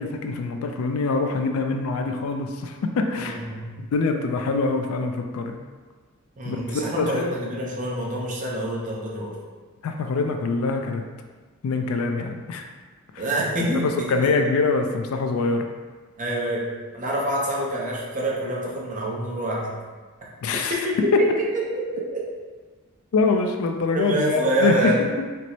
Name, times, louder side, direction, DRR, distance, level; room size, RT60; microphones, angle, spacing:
voice 1, 0.0-3.4 3.8-5.6 6.4-7.3 9.8-11.0 11.6-12.7 13.1-13.2 13.8-15.7 20.4-21.2 23.1-24.9 25.2-25.3, left 4 dB, 65° left, 5 dB, 0.3 m, -24 dB
voice 2, 3.2-3.7 6.4-9.3 13.2-14.3 16.2-19.8 20.7-21.3 21.5-22.3 23.9-25.0, right 1 dB, 35° right, -4 dB, 0.6 m, -26 dB
4.4 x 2.0 x 2.7 m, 1.4 s
head